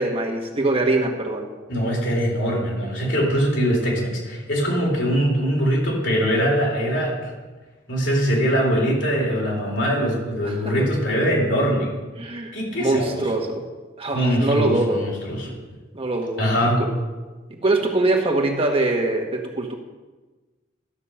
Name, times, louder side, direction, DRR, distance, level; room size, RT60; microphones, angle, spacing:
voice 1, 0.0-1.5 10.4-10.9 12.2-13.6 14.0-15.0 15.5-15.6 15.9-16.5 16.8-16.9 17.6-19.7, right 2 dB, 30° right, 1 dB, 1.2 m, -23 dB
voice 2, 1.7-7.3 7.9-11.9 12.5-13.2 14.1-15.5 16.4-16.8, equal, 70° left, -3 dB, 3.9 m, -22 dB
12.5 x 7.2 x 5.6 m, 1.3 s
head